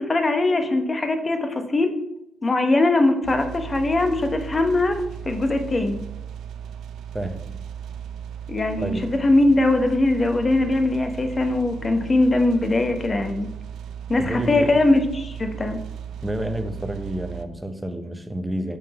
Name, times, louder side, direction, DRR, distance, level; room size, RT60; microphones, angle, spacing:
voice 1, 0.0-1.9 2.4-5.0 5.2-6.0 8.5-13.5 14.1-15.8, left 2 dB, 30° left, 6 dB, 0.8 m, -21 dB
sound 1, 3.2-17.4, right 9 dB, 75° right, 0.3 m, -36 dB
voice 2, 8.8-9.1 14.2-14.8 16.2-18.8, right 1 dB, 10° right, 7 dB, 0.7 m, -29 dB
5.3 x 3.7 x 5.7 m, 0.84 s
cardioid pair, 90°, 0 cm